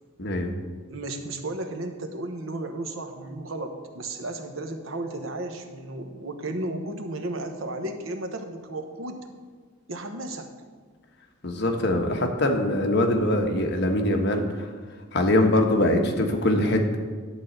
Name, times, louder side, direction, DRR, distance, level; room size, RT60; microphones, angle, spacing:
voice 1, 0.2-0.5 11.4-14.7 15.1-17.0, left 1 dB, 60° left, 3 dB, 1.2 m, -23 dB
voice 2, 0.9-9.3 9.9-10.5, right 2 dB, 90° right, 6 dB, 1.0 m, -34 dB
11.0 x 4.2 x 7.8 m, 1.5 s
head